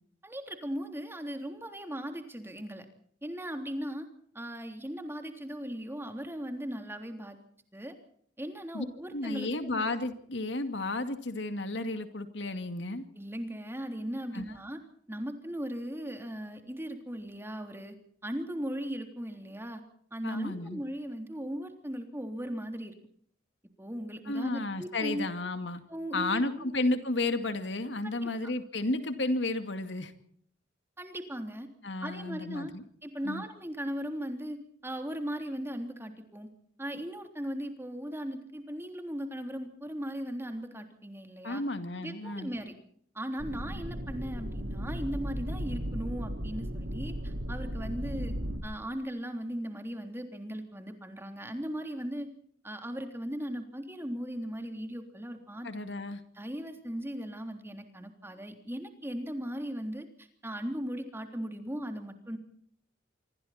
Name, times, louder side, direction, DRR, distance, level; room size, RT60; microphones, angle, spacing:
voice 1, 0.2-2.9 3.2-4.1 4.3-7.4 7.7-8.0 8.4-9.7 13.1-14.8 15.1-18.0 18.2-19.8 20.1-22.9 23.8-25.3 25.9-26.7 28.0-28.5 31.0-31.7 32.0-32.7 33.0-36.5 36.8-41.6 42.0-42.7 43.1-48.4 48.6-52.3 52.6-55.7 56.4-62.4, equal, 15° right, 5 dB, 3.4 m, -38 dB
voice 2, 9.1-13.1 14.3-14.4 20.2-20.8 24.3-25.8 26.1-30.1 31.8-32.8 33.2-33.4 41.4-42.5 55.6-56.2, left 2 dB, 70° left, 9 dB, 2.4 m, -32 dB
sound 1, 43.4-48.6, equal, 90° right, 3.9 m, -35 dB
26.0 x 25.0 x 4.3 m, 0.63 s
head